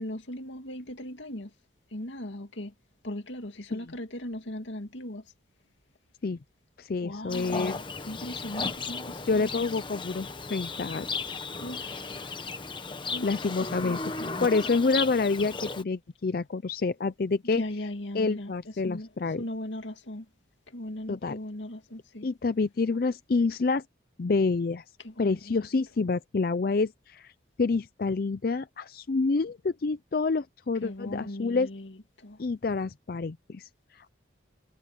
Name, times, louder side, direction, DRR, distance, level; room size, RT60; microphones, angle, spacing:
voice 1, 0.0-1.5 1.9-2.7 3.0-5.2 6.9-9.7 11.5-12.3 13.1-13.3 13.6-14.3 17.5-18.5 18.8-19.1 19.4-20.3 20.7-22.3 25.0-25.7 30.8-32.4, left 1 dB, 80° left, 2.3 m, -38 dB
voice 2, 6.8-7.8 9.3-11.3 13.2-17.6 18.1-19.4 21.1-21.4 22.2-23.8 24.2-24.8 25.2-27.3 27.6-31.7 32.4-34.1, left 4 dB, 50° left, 0.4 m, -28 dB
Livestock farm animals working animals, 7.3-15.8, left 4 dB, 25° left, 1.1 m, -35 dB
head